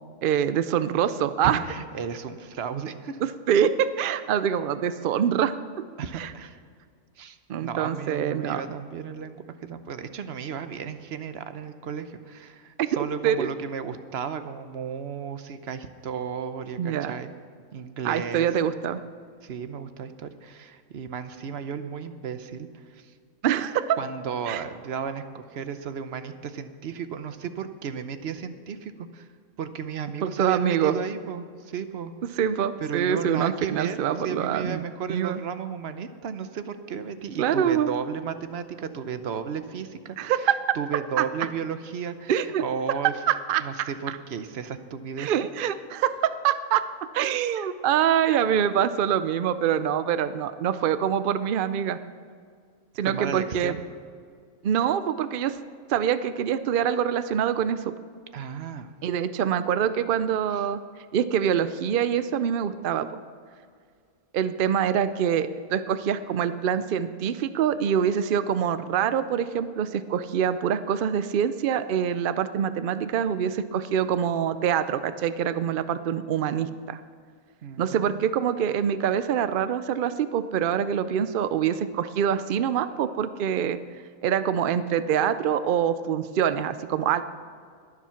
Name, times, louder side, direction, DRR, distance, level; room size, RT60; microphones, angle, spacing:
voice 1, 0.2-1.6 3.2-5.5 6.1-6.3 7.5-8.6 12.8-13.5 16.8-17.1 18.0-19.0 23.4-24.0 24.5-24.6 30.2-30.9 32.3-34.8 35.1-35.4 37.4-37.9 40.2-40.6 41.2-41.3 42.3-42.6 43.3-43.9 45.2-46.9 47.1-52.0 53.0-53.8 54.6-55.6 55.9-57.9 59.0-60.8 61.1-63.1 64.3-77.0 77.8-83.8 84.2-87.2, right 9 dB, 75° right, 12 dB, 0.5 m, -25 dB
voice 2, 1.4-3.2 6.0-6.6 7.2-17.3 17.7-18.5 19.4-23.1 24.0-29.3 29.6-32.1 32.8-40.5 40.7-43.1 43.6-45.3 53.0-53.8 58.3-58.9 77.6-78.3, right 7 dB, 55° right, 10 dB, 0.9 m, -34 dB
21.5 x 7.4 x 5.7 m, 2.1 s
omnidirectional pair, 1.5 m